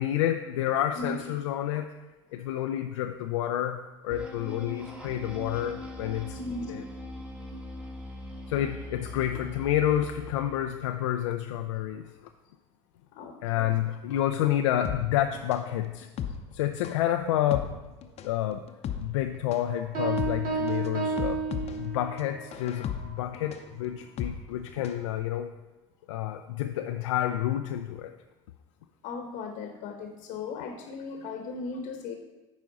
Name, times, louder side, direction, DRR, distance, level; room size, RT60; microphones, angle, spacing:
voice 1, 0.0-1.9 2.3-6.4 6.7-6.8 8.5-12.3 13.4-16.1 16.5-17.8 18.2-18.6 19.0-21.4 21.8-25.5 26.1-28.1, left 12 dB, 80° left, 6 dB, 0.4 m, -29 dB
sound 1, 4.1-10.6, left 1 dB, 10° right, 1.4 m, -41 dB
voice 2, 6.4-6.8 13.1-13.7 29.0-32.1, left 3 dB, 60° left, 4 dB, 1.0 m, -37 dB
sound 2, 14.8-25.1 25.4-25.5, left 8 dB, 45° left, 0.7 m, -37 dB
sound 3, 19.9-22.3, right 4 dB, 60° right, 2.2 m, -31 dB
9.1 x 4.9 x 4.0 m, 1.1 s
hypercardioid pair, 85°, 15 cm